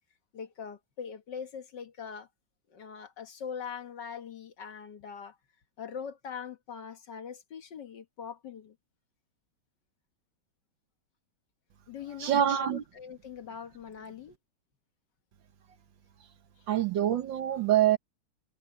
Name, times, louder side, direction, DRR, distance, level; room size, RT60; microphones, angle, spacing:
voice 1, 0.3-2.3 2.7-5.4 5.8-8.8 11.9-14.4, left 6 dB, 55° left, 1.8 m, -42 dB
voice 2, 12.2-12.8 16.7-18.0, right 11 dB, 65° right, 1.6 m, -25 dB
omnidirectional pair, 2.3 m